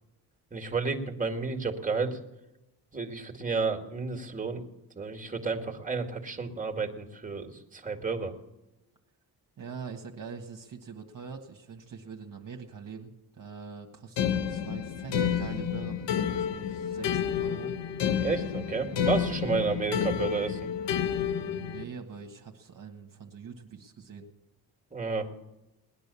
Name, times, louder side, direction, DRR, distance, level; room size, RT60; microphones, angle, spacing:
voice 1, 0.5-2.2 2.9-4.6 5.0-8.3 18.2-20.6 24.9-25.3, right 4 dB, 20° right, 2 dB, 2.3 m, -31 dB
voice 2, 9.6-17.8 18.8-19.0 19.4-19.7 21.2-24.3, right 5 dB, 50° right, 2 dB, 1.6 m, -44 dB
sound 1, 14.2-21.8, left 8 dB, 85° left, 1.0 m, -30 dB
19.0 x 10.5 x 7.0 m, 0.98 s
cardioid pair, 80°, 41 cm